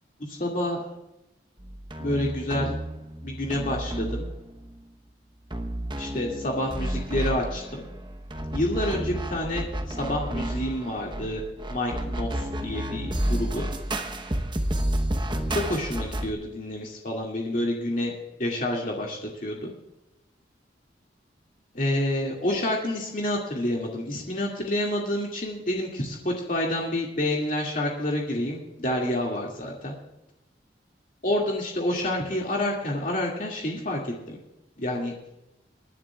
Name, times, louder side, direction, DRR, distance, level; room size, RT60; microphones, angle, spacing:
voice 1, 0.2-0.8 2.0-2.8 3.2-4.3 6.0-7.8 8.5-11.4 11.7-13.7 15.5-18.1 18.4-19.7 21.7-29.9 31.2-34.4 34.8-35.1, left 1 dB, 45° left, -2 dB, 2.3 m, -28 dB
sound 1, 1.6-4.7 5.5-16.3, right 1 dB, 25° right, 1.0 m, -31 dB
27.5 x 11.0 x 2.4 m, 0.92 s
head